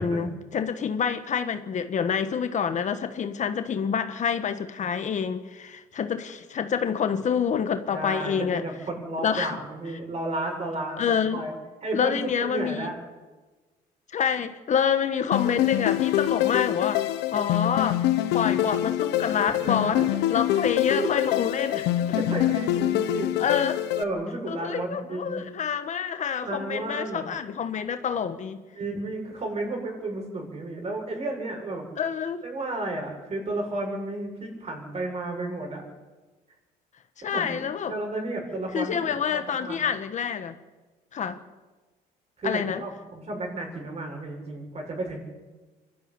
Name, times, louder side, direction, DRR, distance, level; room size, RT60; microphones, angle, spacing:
voice 1, 0.0-8.6 9.2-9.6 11.0-11.4 11.9-12.9 14.1-18.0 18.3-20.0 20.3-22.1 23.4-23.8 24.5-28.6 32.0-32.4 37.2-37.9 38.7-40.5 41.1-41.4 42.4-42.8, left 7 dB, 45° left, 1.5 m, -27 dB
voice 2, 7.9-11.0 11.3-11.6 11.8-13.0 19.6-20.1 21.0-21.1 22.1-23.3 24.0-25.5 26.4-27.2 28.7-31.9 32.4-35.8 37.2-39.0 39.2-39.8 42.4-45.2, right 2 dB, 40° right, 7.6 m, -32 dB
sound 1, 15.3-24.0, left 13 dB, 90° left, 1.3 m, -25 dB
25.0 x 12.5 x 9.8 m
cardioid pair, 110°, 17 cm